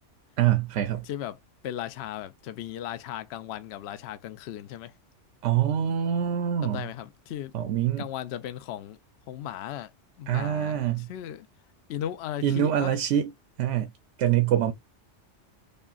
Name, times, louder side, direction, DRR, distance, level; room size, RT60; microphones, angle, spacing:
voice 1, 0.4-1.1 5.4-6.8 7.5-8.0 10.3-11.1 12.4-13.3 13.6-13.9 14.2-14.7, right 10 dB, 85° right, 0.9 m, -25 dB
voice 2, 1.0-1.4 1.6-4.9 6.6-7.6 8.0-9.0 9.3-9.9 10.2-11.5 11.9-12.9, left 11 dB, 65° left, 0.8 m, -36 dB
5.3 x 2.1 x 2.3 m
omnidirectional pair, 1.3 m